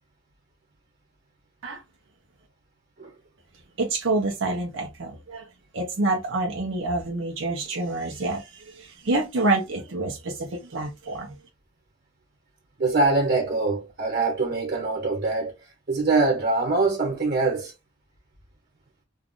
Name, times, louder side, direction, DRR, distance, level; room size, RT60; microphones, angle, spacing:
voice 1, 3.8-5.4 5.7-8.4 9.1-11.3, right 2 dB, 70° right, 0.7 m, -27 dB
voice 2, 12.8-15.5 15.9-17.7, right 3 dB, 55° right, 1.1 m, -23 dB
2.4 x 2.4 x 3.6 m
head